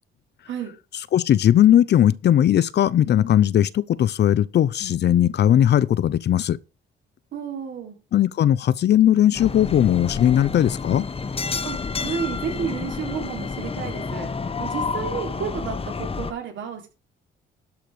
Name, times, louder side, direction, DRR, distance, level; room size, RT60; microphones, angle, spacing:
voice 1, 1.1-6.6 8.1-11.1, left 11 dB, 60° left, 0.7 m, -18 dB
voice 2, 7.3-8.0 11.6-14.3 14.6-16.9, right 7 dB, 70° right, 3.7 m, -31 dB
sound 1, 9.3-16.3, left 4 dB, 30° left, 1.0 m, -29 dB
12.0 x 5.9 x 4.9 m
cardioid pair, 90°, 20 cm